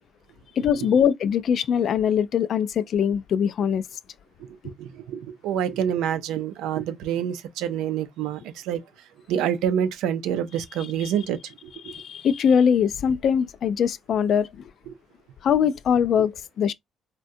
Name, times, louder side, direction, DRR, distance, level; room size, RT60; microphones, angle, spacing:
voice 1, 0.6-3.8 4.6-4.7 11.0-11.1 11.8-14.6 15.4-16.7, left 8 dB, 55° left, 0.3 m, -22 dB
voice 2, 4.6-8.8 9.3-11.9 14.9-15.0 16.2-16.3, right 9 dB, 90° right, 0.4 m, -27 dB
3.5 x 2.2 x 2.6 m
cardioid pair, 125°, 0 cm